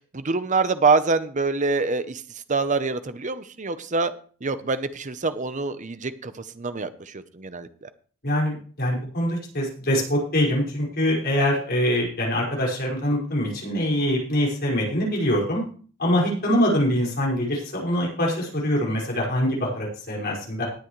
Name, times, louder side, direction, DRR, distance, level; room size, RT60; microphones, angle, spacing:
voice 1, 0.1-2.2 2.5-4.1 4.4-7.9, right 4 dB, 40° right, 12 dB, 0.8 m, -25 dB
voice 2, 8.2-15.6 16.0-20.6, equal, 50° left, -3 dB, 5.5 m, -24 dB
19.0 x 8.3 x 3.2 m, 0.43 s
head